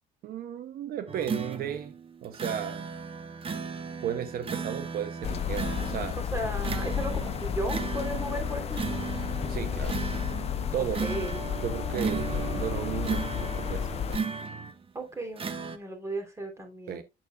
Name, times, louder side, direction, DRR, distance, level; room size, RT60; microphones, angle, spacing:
voice 1, 0.2-1.9 2.2-2.9 4.0-6.2 9.5-10.0 10.7-11.1 11.6-14.3 16.9-17.0, right 9 dB, 65° right, 0.8 m, -35 dB
sound 1, 1.1-14.9 15.4-15.8, right 5 dB, 35° right, 1.0 m, -36 dB
sound 2, 5.2-14.2, left 9 dB, 40° left, 0.4 m, -32 dB
voice 2, 6.2-9.0 11.0-11.4 14.9-17.0, right 1 dB, 15° right, 3.3 m, -35 dB
8.7 x 7.9 x 2.3 m
cardioid pair, 110°, 17 cm